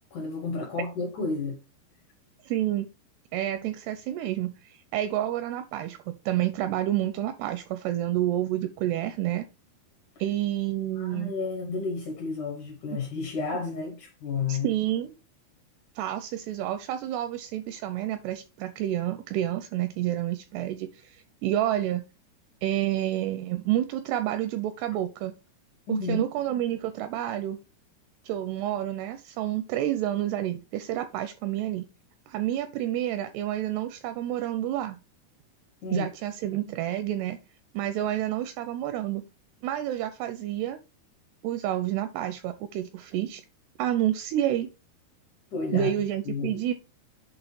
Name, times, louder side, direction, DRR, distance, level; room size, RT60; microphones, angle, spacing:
voice 1, 0.1-1.6 11.0-14.7 25.9-26.3 35.8-36.1 45.5-45.9 46.3-46.6, left 4 dB, 70° left, 2.0 m, -31 dB
voice 2, 2.4-2.9 3.3-9.5 10.2-11.3 14.5-15.1 16.0-22.1 22.6-25.3 26.1-27.6 28.3-31.9 32.3-35.0 35.9-37.4 37.7-39.2 39.6-40.8 41.4-43.4 43.8-44.7 45.7-46.7, right 12 dB, 85° right, 2.3 m, -29 dB
8.2 x 3.0 x 4.3 m
omnidirectional pair, 5.0 m